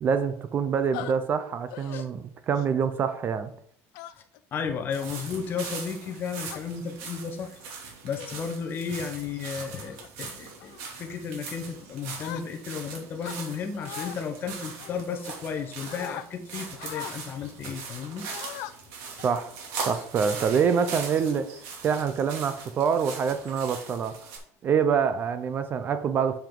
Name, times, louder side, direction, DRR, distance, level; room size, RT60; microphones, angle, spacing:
voice 1, 0.0-3.5 19.2-19.5 19.9-21.5 21.8-24.1 24.6-26.4, right 6 dB, 30° right, 11 dB, 0.5 m, -26 dB
sound 1, 0.9-1.1 1.7-2.0 2.5-2.9 3.9-4.4 5.0-5.3 6.0-6.6 7.4-7.6 8.2-8.5 9.0-9.3 9.7-10.1 10.6-10.9 12.2-12.8 13.2-14.2 14.8-15.6 15.9-16.3 16.8-17.2 18.2-18.7 19.2-19.3 19.8-20.5, left 13 dB, 70° left, 0.5 m, -41 dB
voice 2, 4.5-7.6 8.0-18.3, left 6 dB, 30° left, 6 dB, 1.0 m, -34 dB
sound 2, 4.9-24.4, right 5 dB, 80° right, 2.7 m, -40 dB
7.5 x 7.2 x 3.8 m, 0.63 s
cardioid pair, 165°, 7 cm